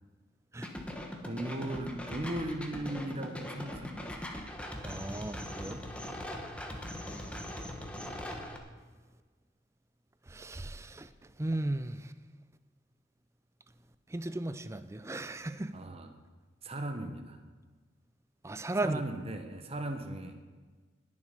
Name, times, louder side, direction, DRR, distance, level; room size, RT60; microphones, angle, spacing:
sound 1, 0.6-8.6, left 1 dB, 5° left, 1.1 m, -41 dB
voice 1, 1.2-4.3 15.7-16.1 16.6-17.4 18.7-20.4, right 1 dB, 30° right, 6 dB, 1.0 m, -38 dB
voice 2, 4.8-5.8 10.3-11.1 11.4-12.0 14.1-15.7 18.4-19.0, right 2 dB, 15° right, 13 dB, 0.4 m, -35 dB
19.5 x 7.3 x 5.3 m, 1.4 s
head